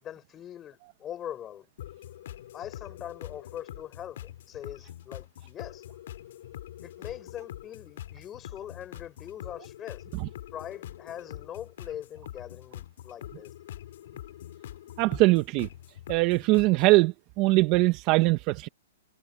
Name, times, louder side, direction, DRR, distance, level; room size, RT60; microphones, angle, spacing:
voice 1, 0.0-1.7 2.5-5.8 6.8-10.0 10.5-13.5, left 10 dB, 20° left, 5.1 m, -42 dB
sound 1, 1.8-17.0, left 12 dB, 60° left, 3.0 m, -44 dB
voice 2, 15.0-15.7 16.1-18.7, right 22 dB, 35° right, 1.2 m, -22 dB
hypercardioid pair, 150°, 0 cm